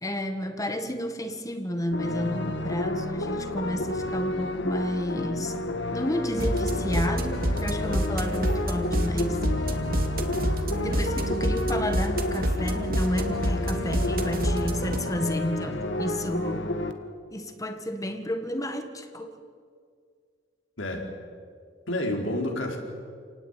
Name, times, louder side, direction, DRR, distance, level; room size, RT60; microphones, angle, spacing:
voice 1, 0.0-5.6 5.9-9.4 10.8-16.7 17.3-19.4, equal, 20° left, 7 dB, 1.7 m, -31 dB
sound 1, 1.9-16.9, left 1 dB, 65° left, 1.9 m, -31 dB
sound 2, 6.4-15.0, right 1 dB, 50° right, 2.2 m, -28 dB
voice 2, 20.8-21.1 21.9-22.8, left 1 dB, 80° left, 1 dB, 4.6 m, -29 dB
28.5 x 18.5 x 9.1 m, 2.1 s
head